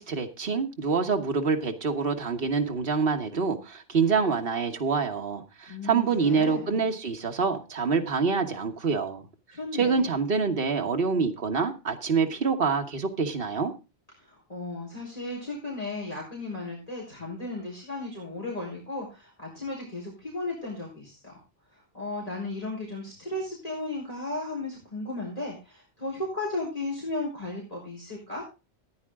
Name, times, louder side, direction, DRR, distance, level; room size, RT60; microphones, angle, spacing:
voice 1, 0.0-9.2 9.7-13.7, right 5 dB, 60° right, 1.6 m, -26 dB
voice 2, 5.7-6.8 9.5-10.0 14.2-21.4 21.7-28.4, left 2 dB, 35° left, 4.3 m, -35 dB
14.5 x 9.7 x 3.7 m
omnidirectional pair, 1.1 m